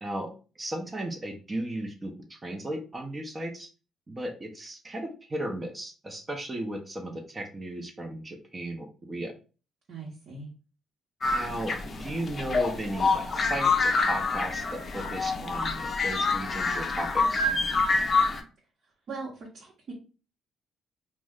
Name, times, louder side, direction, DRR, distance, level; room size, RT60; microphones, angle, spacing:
voice 1, 0.0-3.7 4.1-9.3 11.3-17.5, right 1 dB, 30° right, 4 dB, 0.6 m, -35 dB
voice 2, 9.9-10.5 19.1-19.9, right 4 dB, 60° right, -4 dB, 0.9 m, -40 dB
sound 1, 11.2-18.4, left 3 dB, 45° left, 0.5 m, -27 dB
2.4 x 2.1 x 3.5 m, 0.35 s
cardioid pair, 75°, 0 cm